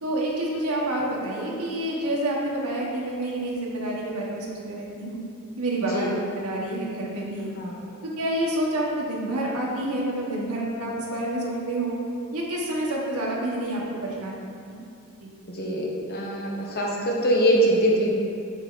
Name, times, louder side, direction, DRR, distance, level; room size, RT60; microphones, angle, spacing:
voice 1, 0.0-5.2 5.6-7.5 8.0-11.9 12.3-14.4 14.7-14.8 15.2-15.3, right 1 dB, 80° right, -3 dB, 1.4 m, -28 dB
voice 2, 15.5-18.1, right 1 dB, 45° left, -3 dB, 1.2 m, -23 dB
8.1 x 4.4 x 4.0 m, 2.6 s
head